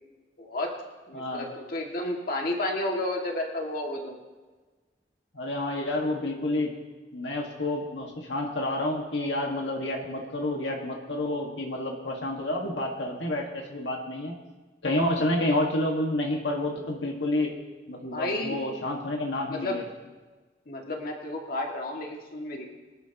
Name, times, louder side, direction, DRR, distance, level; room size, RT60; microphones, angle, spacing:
voice 1, 0.4-0.7 1.1-4.2 18.1-18.6 19.5-19.8 20.7-22.6, left 1 dB, 55° left, 0 dB, 2.2 m, -31 dB
voice 2, 1.1-1.5 5.3-6.7 7.1-14.3 14.8-17.5 17.9-19.8, left 1 dB, 85° left, 0 dB, 1.8 m, -29 dB
23.0 x 12.0 x 3.0 m, 1.3 s
head